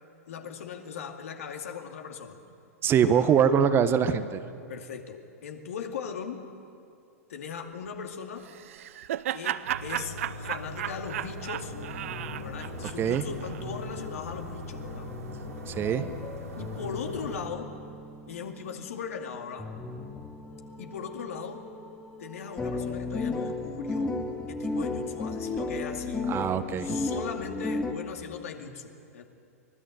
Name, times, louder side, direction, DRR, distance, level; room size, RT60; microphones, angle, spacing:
voice 1, 0.3-2.4 3.1-3.3 4.7-6.5 7.3-8.5 9.3-11.7 12.4-15.1 16.6-17.7 18.3-19.7 20.8-21.6 22.2-24.1 24.5-26.3 26.8-29.2, left 6 dB, 65° left, 4 dB, 2.4 m, -39 dB
voice 2, 2.8-4.4 13.0-13.2 15.7-16.1 26.3-27.1, right 8 dB, 30° right, 11 dB, 1.1 m, -23 dB
Laughter, 8.4-13.6, right 12 dB, 60° right, 0.7 m, -34 dB
sound 1, 9.6-17.5, left 1 dB, 80° right, 3.0 m, -41 dB
sound 2, 11.6-27.9, left 3 dB, 10° left, 1.9 m, -36 dB
24.0 x 21.0 x 7.9 m, 2.4 s
figure-of-eight pair, 100°, 8 cm